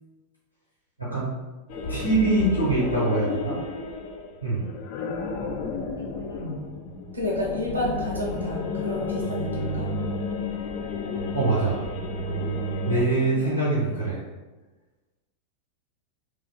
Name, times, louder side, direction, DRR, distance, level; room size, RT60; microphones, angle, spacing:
voice 1, 1.0-1.3 1.9-3.5 4.4-4.7 11.3-11.8 12.9-14.2, right 2 dB, 85° left, -7 dB, 0.7 m, -23 dB
sound 1, 1.7-13.1, left 2 dB, 45° left, 0.3 m, -31 dB
voice 2, 6.0-6.6 7.1-9.9 13.2-14.0, left 1 dB, 75° right, -2 dB, 0.6 m, -31 dB
3.0 x 2.3 x 2.2 m, 1.2 s
figure-of-eight pair, 90°, 0 cm